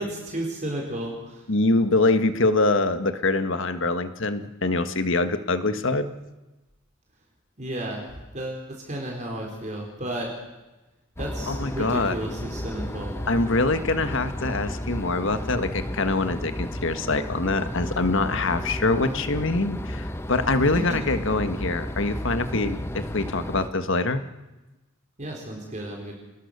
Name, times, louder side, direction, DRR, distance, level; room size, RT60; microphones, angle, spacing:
voice 1, 0.0-1.4 7.6-8.0 8.3-10.3 11.2-13.1 20.6-20.8 22.0-22.2 25.2-26.1, right 1 dB, 35° right, -1 dB, 4.4 m, -33 dB
voice 2, 1.5-6.1 11.5-12.2 13.3-24.2, left 2 dB, 55° left, 9 dB, 1.5 m, -24 dB
sound 1, 11.2-23.7, left 1 dB, 10° left, 1.0 m, -33 dB
27.0 x 20.5 x 6.8 m, 1.1 s
head